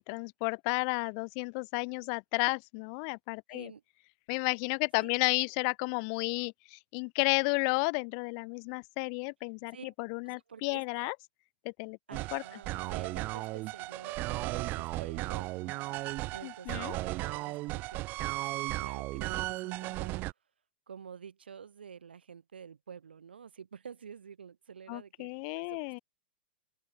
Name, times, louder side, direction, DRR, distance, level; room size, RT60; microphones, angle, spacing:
voice 1, 0.0-3.7 4.3-11.1 11.6-12.0 12.3-12.4 16.4-17.0 24.9-26.0, left 40 dB or more, 40° left, 0.6 m, -32 dB
voice 2, 3.5-3.8 5.0-5.1 9.7-9.9 10.2-11.1 12.1-15.8 16.3-18.0 18.3-20.2 20.9-25.8, right 7 dB, 70° right, 1.6 m, -49 dB
sound 1, 12.1-20.3, right 20 dB, 35° right, 0.6 m, -35 dB
open air
figure-of-eight pair, 105°, 6 cm